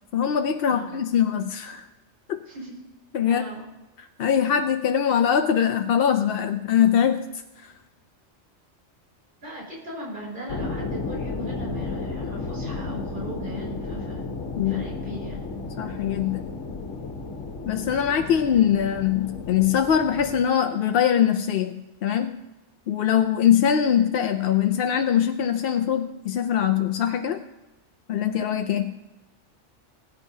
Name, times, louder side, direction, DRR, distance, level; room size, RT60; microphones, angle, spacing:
voice 1, 0.1-1.9 2.3-2.4 3.1-3.4 4.0-7.7 14.5-14.8 15.8-16.5 17.7-22.4 22.9-27.5 28.1-28.9, left 9 dB, 60° left, 7 dB, 0.7 m, -22 dB
voice 2, 0.7-1.1 2.5-2.8 3.2-3.7 9.4-14.2 14.7-15.4, right 1 dB, 50° right, -6 dB, 5.4 m, -38 dB
sound 1, 10.5-20.4, left 3 dB, 75° left, 1.4 m, -33 dB
21.0 x 9.9 x 2.8 m, 1.1 s
omnidirectional pair, 1.2 m